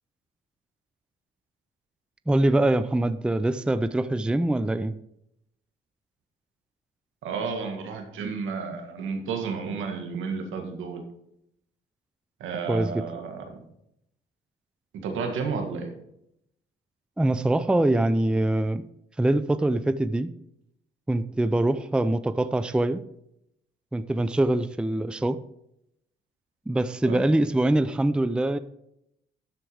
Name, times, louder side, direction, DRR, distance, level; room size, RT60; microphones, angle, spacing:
voice 1, 2.3-4.9 12.7-13.0 17.2-18.8 19.2-20.3 21.1-23.0 23.9-25.4 26.7-28.6, right 1 dB, 5° right, 13 dB, 0.4 m, -23 dB
voice 2, 7.2-11.0 12.4-13.6 15.0-15.9 27.0-27.3, right 5 dB, 80° right, 4 dB, 1.8 m, -32 dB
12.5 x 4.6 x 5.0 m, 0.79 s
cardioid pair, 90°, 20 cm